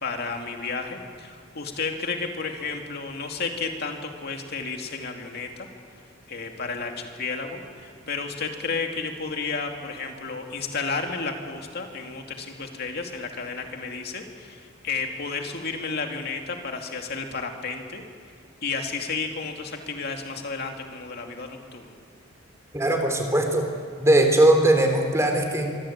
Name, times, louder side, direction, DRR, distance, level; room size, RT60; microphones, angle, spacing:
voice 1, 0.0-5.7 6.3-18.0 18.6-22.0, left 4 dB, 50° left, 3 dB, 2.5 m, -32 dB
voice 2, 22.7-23.7 24.0-25.7, right 1 dB, 15° right, 4 dB, 3.5 m, -20 dB
26.0 x 24.5 x 8.8 m, 2.1 s
head